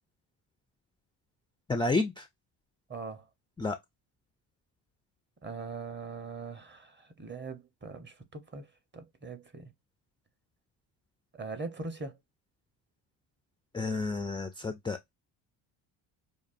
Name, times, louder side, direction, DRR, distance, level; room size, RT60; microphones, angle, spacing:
voice 1, 1.7-2.3 3.6-3.8 13.7-15.1, left 3 dB, 10° left, 0.4 m, -30 dB
voice 2, 2.9-3.2 5.4-8.7 8.9-9.7 11.3-12.2, right 4 dB, 25° right, 0.9 m, -41 dB
5.1 x 2.4 x 2.5 m
supercardioid pair, 80°, 48 cm